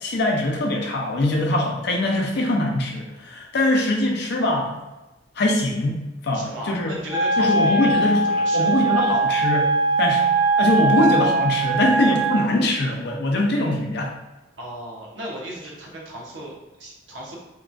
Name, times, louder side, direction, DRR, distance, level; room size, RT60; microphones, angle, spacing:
voice 1, 0.0-4.8 5.4-6.9 7.4-8.2 8.5-9.7 10.0-10.3 10.6-14.1, left 1 dB, 65° left, 1 dB, 0.5 m, -22 dB
voice 2, 6.3-9.3 14.6-17.4, right 1 dB, 80° right, -3 dB, 0.8 m, -36 dB
Wind instrument woodwind instrument, 7.1-12.5, right 3 dB, 15° right, 0.4 m, -21 dB
2.9 x 2.3 x 2.5 m, 1.1 s
head